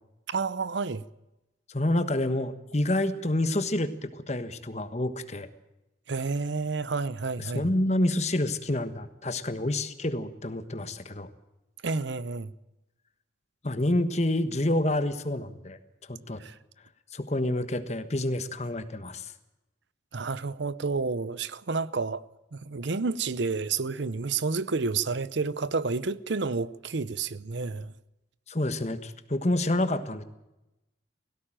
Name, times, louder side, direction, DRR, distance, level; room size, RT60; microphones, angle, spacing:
voice 1, 0.3-1.0 6.1-7.7 11.8-12.5 16.4-16.6 20.1-22.2 22.5-27.9, right 4 dB, 65° right, 0.7 m, -30 dB
voice 2, 1.7-5.5 7.5-11.3 13.6-15.8 16.1-16.4 17.1-19.3 28.5-30.2, left 1 dB, 35° left, 1.3 m, -28 dB
18.0 x 16.5 x 8.9 m
head